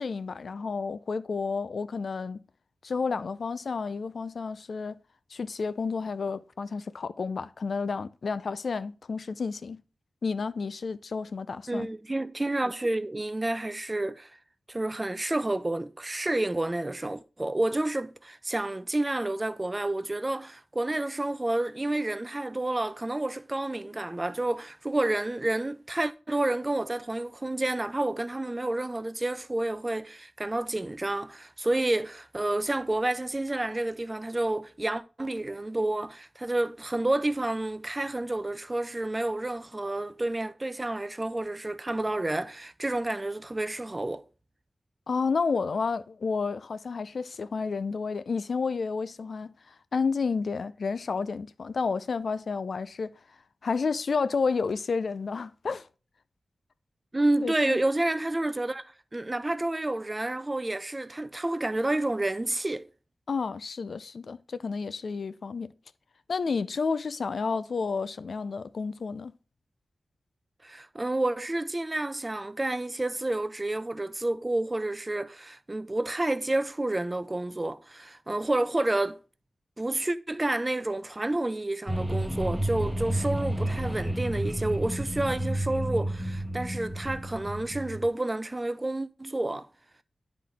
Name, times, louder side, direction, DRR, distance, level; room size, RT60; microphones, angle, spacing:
voice 1, 0.0-2.4 2.8-5.0 5.3-9.8 10.2-11.9 45.1-49.5 49.9-53.1 53.6-55.8 57.4-57.8 63.3-65.7 66.3-69.3, left 5 dB, 70° left, 0.4 m, -31 dB
voice 2, 11.7-14.3 14.7-44.2 57.1-58.8 59.1-62.9 70.6-79.2 79.8-89.7, right 2 dB, 20° right, 0.4 m, -29 dB
sound 1, 81.9-88.1, right 1 dB, ahead, 1.2 m, -31 dB
10.5 x 3.9 x 3.4 m
wide cardioid pair, 120°, 0 cm